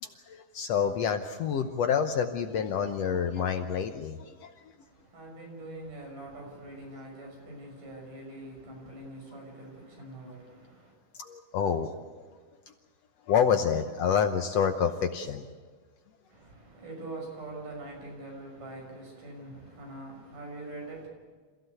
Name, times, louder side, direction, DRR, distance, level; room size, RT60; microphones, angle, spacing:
voice 1, 0.0-4.5 11.2-11.9 13.3-15.5, left 7 dB, 70° left, 1.7 m, -28 dB
voice 2, 4.8-10.9 16.3-21.1, right 2 dB, 75° right, 7.7 m, -44 dB
27.5 x 15.5 x 8.2 m
omnidirectional pair, 3.7 m